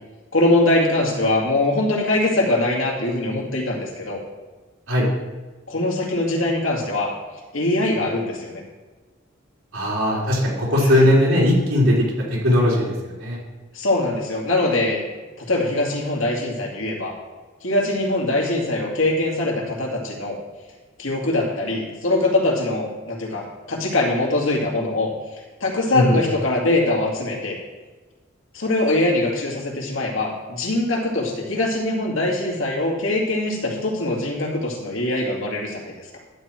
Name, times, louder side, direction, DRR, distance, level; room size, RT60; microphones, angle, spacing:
voice 1, 0.3-4.2 5.7-7.1 7.5-8.6 10.8-11.0 13.7-15.0 15.4-17.2 17.6-20.4 21.0-25.1 25.6-27.6 28.5-36.1, left 2 dB, 80° left, -1 dB, 2.4 m, -22 dB
voice 2, 9.7-12.0 12.4-13.4 25.9-26.2, left 1 dB, 90° right, -5 dB, 3.7 m, -18 dB
12.0 x 4.5 x 7.6 m, 1.3 s
head